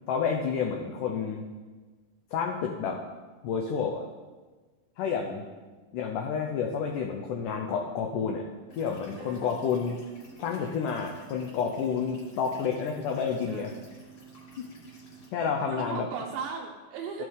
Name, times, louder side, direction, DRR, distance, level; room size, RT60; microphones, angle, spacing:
voice 1, 0.1-1.5 2.3-3.0 3.4-4.1 5.0-5.4 5.9-8.4 8.7-10.0 10.4-13.7 14.6-14.7 15.3-16.1 17.2-17.3, left 6 dB, 85° left, 2 dB, 1.8 m, -30 dB
sound 1, 8.7-15.3, right 4 dB, 45° left, 2.8 m, -50 dB
voice 2, 9.2-9.6 13.5-13.9 15.7-17.3, right 5 dB, 80° right, -1 dB, 2.5 m, -37 dB
13.5 x 6.1 x 3.7 m, 1.3 s
omnidirectional pair, 4.6 m